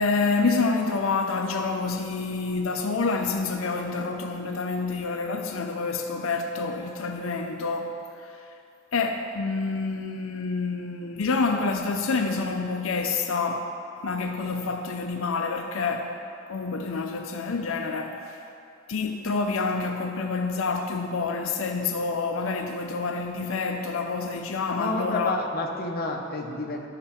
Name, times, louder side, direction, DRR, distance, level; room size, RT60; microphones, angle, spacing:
voice 1, 0.0-8.4 8.9-13.7 14.0-16.2 16.5-18.4 18.9-25.4, left 4 dB, 90° left, 0.5 m, -28 dB
voice 2, 24.7-26.9, left 2 dB, 50° left, 0.8 m, -30 dB
11.5 x 5.7 x 4.3 m
head